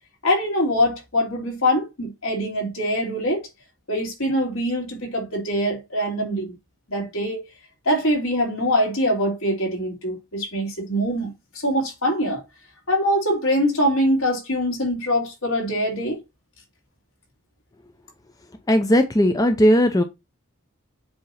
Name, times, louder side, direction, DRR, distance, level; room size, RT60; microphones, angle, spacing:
voice 1, 0.2-3.5 3.9-6.5 6.9-7.5 7.9-11.3 11.6-12.4 12.9-16.2, equal, 65° left, 2.8 m, -23 dB
voice 2, 18.7-20.0, equal, 15° left, 0.5 m, -17 dB
7.8 x 2.9 x 5.5 m
head